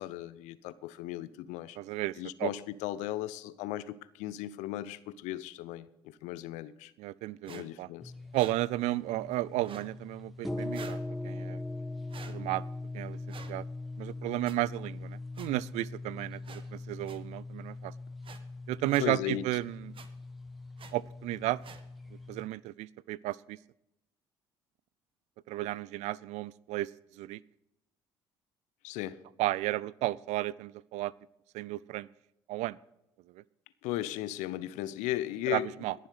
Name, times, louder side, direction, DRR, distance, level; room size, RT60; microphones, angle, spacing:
voice 1, 0.0-1.8 2.2-6.9 7.5-8.1 19.0-19.4 28.8-29.2 33.8-35.7, left 14 dB, 70° left, 0.7 m, -36 dB
voice 2, 1.8-2.1 2.4-2.5 7.0-7.9 8.3-11.0 11.2-11.6 12.3-12.6 12.9-13.2 13.5-13.6 14.0-17.9 18.7-19.9 20.9-21.6 22.3-23.6 25.5-26.9 27.2-27.4 29.4-31.1 31.5-32.1 32.5-32.8 35.5-35.9, right 17 dB, 60° right, 0.4 m, -33 dB
sound 1, 7.4-7.6 8.3-8.5 9.6-9.9 10.7-11.0 12.1-12.3 13.3-13.5 14.4-14.5 15.3-15.5 16.4-16.6 17.0-17.2 18.2-18.4 18.9-19.0 19.9-20.1 20.8-20.9 21.6-21.8, right 6 dB, 40° right, 1.3 m, -48 dB
sound 2, 8.0-22.5, left 2 dB, ahead, 1.6 m, -41 dB
20.5 x 7.3 x 5.0 m
hypercardioid pair, 55°, 13 cm